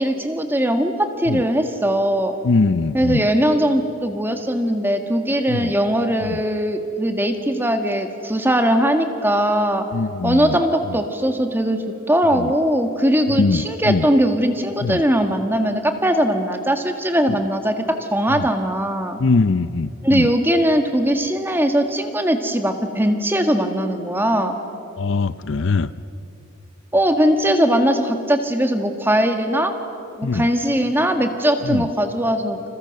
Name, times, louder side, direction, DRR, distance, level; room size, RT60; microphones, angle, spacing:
voice 1, 0.0-2.3 2.9-9.9 10.2-19.2 20.0-24.6 26.9-29.7 30.2-32.7, equal, 10° right, 5 dB, 1.8 m, -20 dB
voice 2, 2.4-3.3 5.5-5.7 6.3-6.4 9.9-10.6 12.4-12.5 13.3-14.1 14.8-15.0 17.3-17.4 18.3-18.5 19.2-20.3 25.0-25.9 30.2-30.5 31.6-31.9, left 3 dB, 60° left, 14 dB, 0.6 m, -22 dB
29.5 x 27.5 x 6.6 m, 2.7 s
head